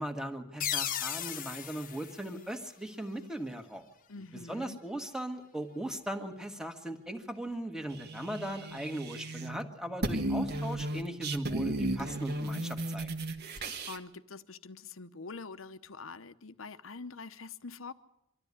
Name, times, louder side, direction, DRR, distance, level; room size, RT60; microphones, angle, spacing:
voice 1, 0.0-3.8 4.3-13.1, right 1 dB, 5° right, 1.7 m, -39 dB
sound 1, 0.6-3.2, left 9 dB, 45° left, 1.1 m, -37 dB
voice 2, 4.1-4.8 13.5-17.9, left 4 dB, 85° left, 1.0 m, -45 dB
sound 2, 7.9-9.6 9.9-14.0, right 1 dB, 55° right, 1.6 m, -35 dB
25.0 x 13.0 x 9.7 m
head